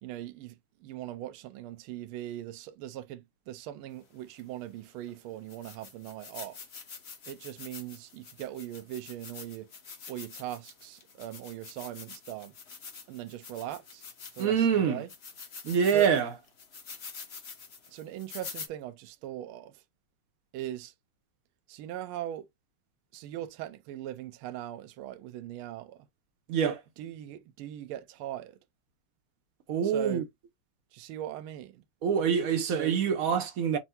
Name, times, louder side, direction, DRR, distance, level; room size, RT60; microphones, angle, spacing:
voice 1, 0.0-0.6 0.8-6.6 7.3-9.7 10.1-12.5 13.1-14.0 14.4-15.1 15.9-16.1 17.9-19.8 20.5-20.9 21.7-22.5 23.1-26.1 27.0-28.6 29.8-30.3 30.9-31.8 32.6-33.0, right 12 dB, 80° right, 1.4 m, -40 dB
sound 1, 4.4-4.5 5.1-5.2 5.5-14.6 15.1-18.7, left 5 dB, 45° left, 0.9 m, -46 dB
voice 2, 14.4-15.0 15.6-16.3 26.5-26.8 29.7-30.2 32.0-33.8, right 7 dB, 65° right, 0.8 m, -25 dB
4.5 x 2.1 x 4.2 m
omnidirectional pair, 2.4 m